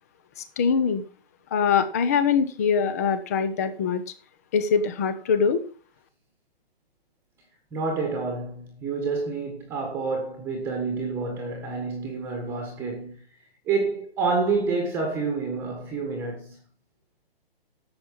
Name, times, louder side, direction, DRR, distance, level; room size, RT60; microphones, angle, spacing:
voice 1, 0.4-1.0 1.5-4.0 4.5-5.6, left 6 dB, 15° left, 0.7 m, -23 dB
voice 2, 7.7-13.2 13.7-16.6, right 4 dB, 5° right, 1.4 m, -28 dB
11.5 x 7.6 x 5.5 m
hypercardioid pair, 165°, 31 cm